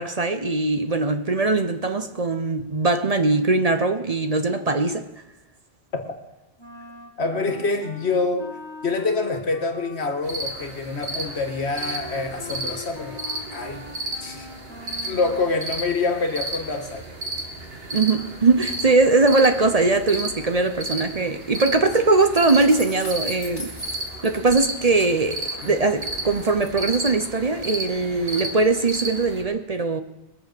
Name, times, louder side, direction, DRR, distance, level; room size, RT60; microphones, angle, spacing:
voice 1, 0.0-5.0 17.9-23.7 24.2-30.0, right 3 dB, 40° right, 8 dB, 0.8 m, -21 dB
Wind instrument woodwind instrument, 6.6-15.6, left 2 dB, 25° left, 1.6 m, -41 dB
voice 2, 7.2-8.5 8.8-13.2 13.5-13.9 14.2-14.5 14.8-17.1 25.6-25.8, left 3 dB, 80° left, 6 dB, 1.8 m, -26 dB
sound 1, 10.2-29.4, right 1 dB, 65° right, 2.2 m, -33 dB
sound 2, 22.3-25.7 26.0-26.7, left 2 dB, 45° left, 2.7 m, -40 dB
22.0 x 7.4 x 6.7 m, 0.97 s
omnidirectional pair, 1.1 m